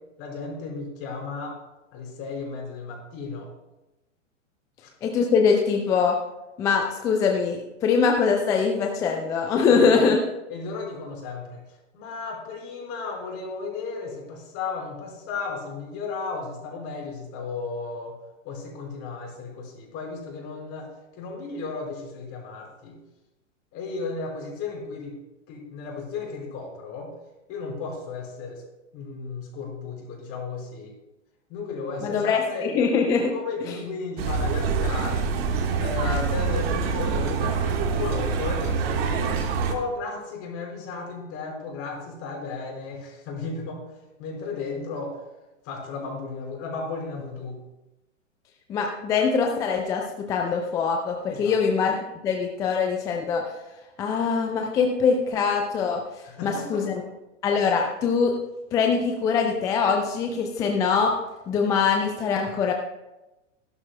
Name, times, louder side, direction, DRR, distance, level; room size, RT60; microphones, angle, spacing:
voice 1, 0.2-1.6 1.9-3.5 4.8-4.9 9.7-10.1 10.5-18.2 18.4-20.9 21.1-23.0 23.7-25.2 25.5-27.1 27.5-28.6 28.9-30.9 31.5-32.7 33.3-35.3 35.8-43.8 44.2-45.2 45.6-47.6 51.3-51.6 56.2-56.8, left 4 dB, 35° left, -1 dB, 4.5 m, -34 dB
voice 2, 5.0-6.2 6.6-10.2 32.0-33.3 48.7-52.0 52.2-53.4 54.0-56.0 56.4-57.0 57.4-58.4 58.7-61.1 61.5-62.7, left 5 dB, 10° left, 2 dB, 0.3 m, -23 dB
sound 1, 34.2-39.7, right 5 dB, 50° right, 1.5 m, -25 dB
16.5 x 11.5 x 2.2 m, 0.99 s
hypercardioid pair, 120°, 38 cm